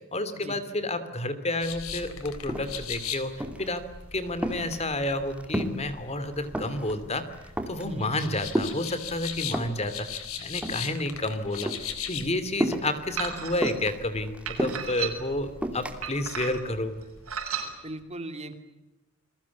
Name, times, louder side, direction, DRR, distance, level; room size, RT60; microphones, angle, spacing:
voice 1, 0.1-3.8 4.1-7.2 7.7-11.7 12.1-17.0, left 2 dB, 30° left, 12 dB, 2.7 m, -30 dB
sound 1, 1.6-17.4, left 7 dB, 80° left, 3.9 m, -40 dB
sound 2, 2.0-2.1 2.3-3.0 3.4-3.8 4.1-5.9 6.2-7.0 7.3-7.9 8.5-9.9 10.5-11.3 11.5-11.9 12.6-13.0 13.6-15.0 15.6-16.0, equal, 5° right, 2.8 m, -31 dB
sound 3, 13.2-13.7 14.5-15.4 16.0-16.7 17.3-17.7, right 7 dB, 85° right, 6.9 m, -33 dB
voice 2, 17.8-18.5, right 1 dB, 30° right, 8 dB, 2.8 m, -39 dB
29.5 x 22.0 x 8.5 m, 1.0 s
head